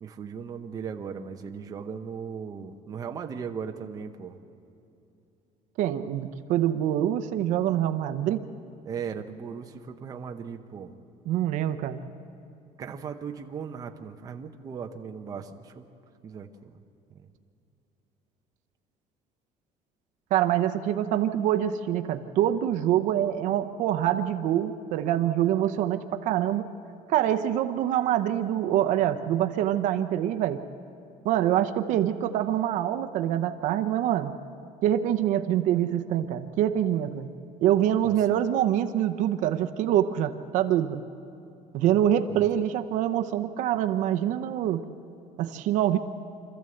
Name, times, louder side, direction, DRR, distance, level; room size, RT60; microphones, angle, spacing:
voice 1, 0.0-4.4 8.9-10.9 12.8-15.8 16.2-16.7 17.1-17.2 38.0-38.2 42.3-42.4, right 6 dB, 25° right, 4 dB, 0.8 m, -37 dB
voice 2, 5.8-8.4 11.3-12.0 20.3-26.7 27.1-30.6 31.2-34.3 34.8-37.3 37.6-41.0 41.7-44.8 45.4-46.0, right 11 dB, 60° right, 8 dB, 0.8 m, -25 dB
26.0 x 14.0 x 7.8 m, 2.7 s
cardioid pair, 180°, 14 cm